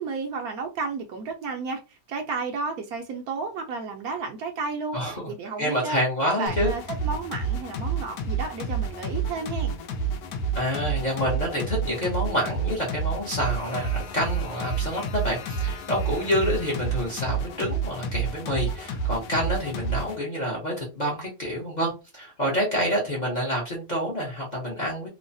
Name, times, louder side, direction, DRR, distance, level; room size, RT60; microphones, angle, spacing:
voice 1, 0.0-5.0 5.3-6.0 6.4-9.7, right 4 dB, 70° right, 1.0 m, -32 dB
voice 2, 4.9-5.3 5.6-6.7 10.5-25.1, equal, 35° left, 0.7 m, -28 dB
sound 1, 6.5-20.2, right 4 dB, 75° left, 1.1 m, -29 dB
3.1 x 2.1 x 2.5 m
omnidirectional pair, 1.7 m